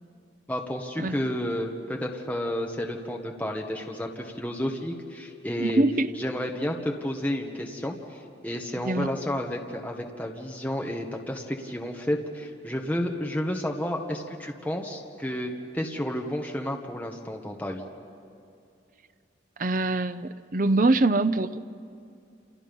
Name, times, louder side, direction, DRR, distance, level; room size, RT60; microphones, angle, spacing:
voice 1, 0.5-5.8 6.1-17.8, equal, 10° left, 1 dB, 1.5 m, -31 dB
voice 2, 5.6-6.1 8.8-9.1 19.6-21.6, right 2 dB, 45° right, 12 dB, 0.7 m, -24 dB
29.5 x 28.0 x 5.4 m, 2.5 s
head